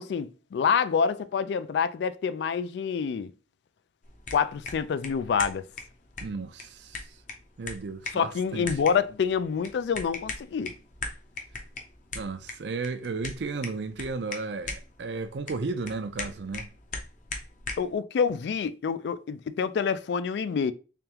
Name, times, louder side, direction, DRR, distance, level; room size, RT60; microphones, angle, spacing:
voice 1, 0.0-3.3 4.3-5.6 8.1-10.7 17.8-20.7, left 6 dB, 70° left, 0.3 m, -27 dB
sound 1, 4.0-17.9, left 3 dB, 45° left, 0.7 m, -41 dB
voice 2, 6.2-7.1 7.6-8.7 12.1-16.7, right 4 dB, 75° right, 0.5 m, -34 dB
3.4 x 3.4 x 2.9 m
head